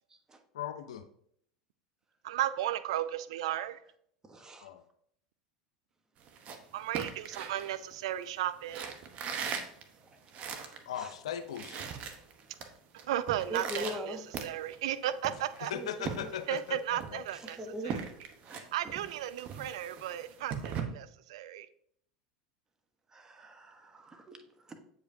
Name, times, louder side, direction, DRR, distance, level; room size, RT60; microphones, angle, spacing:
voice 1, 0.5-1.0 4.6-4.8 10.9-11.8 15.6-17.2 17.8-18.0, left 9 dB, 75° left, 9 dB, 0.6 m, -39 dB
voice 2, 2.2-3.8 6.7-8.9 13.1-14.2 14.4-15.7 16.5-17.6 17.8-18.1 18.5-21.7, right 12 dB, 70° right, 14 dB, 0.4 m, -35 dB
voice 3, 4.2-4.7 10.0-10.2 10.9-11.1 13.5-14.2 15.7-16.3 17.3-18.0 18.5-18.6 23.1-24.7, equal, 20° right, 5 dB, 1.1 m, -42 dB
sound 1, 6.2-8.2 8.7-10.8 11.2-11.3 11.4-12.7 13.0-14.9 15.2-16.7 17.0-20.8, right 6 dB, 45° right, 0.9 m, -40 dB
8.1 x 5.0 x 2.7 m, 0.66 s
hypercardioid pair, 80°, 3 cm